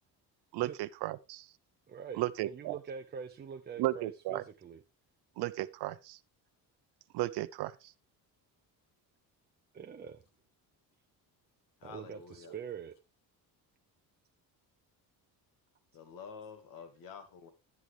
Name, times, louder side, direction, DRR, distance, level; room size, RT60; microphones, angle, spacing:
voice 1, 0.5-1.5 2.2-2.7 3.8-4.4 5.4-6.2 7.1-7.7, right 16 dB, 85° right, 0.7 m, -34 dB
voice 2, 1.9-4.8 9.7-10.2 11.8-12.9, right 7 dB, 25° right, 0.6 m, -44 dB
voice 3, 11.8-12.5 15.9-17.5, left 6 dB, 60° left, 2.0 m, -49 dB
11.0 x 8.5 x 3.3 m
cardioid pair, 160°, 38 cm